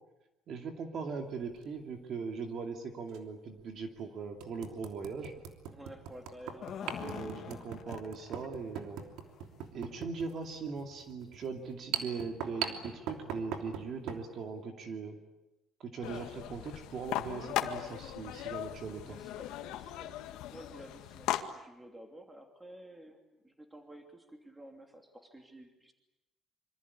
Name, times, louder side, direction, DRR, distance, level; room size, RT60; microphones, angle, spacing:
voice 1, 0.5-5.3 6.9-9.1 9.7-15.2 15.8-19.2, right 5 dB, 40° right, 4 dB, 2.6 m, -40 dB
sound 1, 1.4-1.6 3.1-3.2 3.8-3.9 4.4-14.3, right 8 dB, 80° right, 3.1 m, -41 dB
voice 2, 5.7-7.6 16.4-16.6 19.0-25.9, right 1 dB, 10° right, 4 dB, 3.0 m, -52 dB
sound 2, 6.4-8.5 8.7-8.8 9.3-9.4 10.3-10.4 10.8-10.9, left 8 dB, 40° left, 2.0 m, -44 dB
sound 3, 16.0-21.4, left 13 dB, 90° left, 1.9 m, -38 dB
26.5 x 25.5 x 8.5 m, 0.98 s
cardioid pair, 180°, 0 cm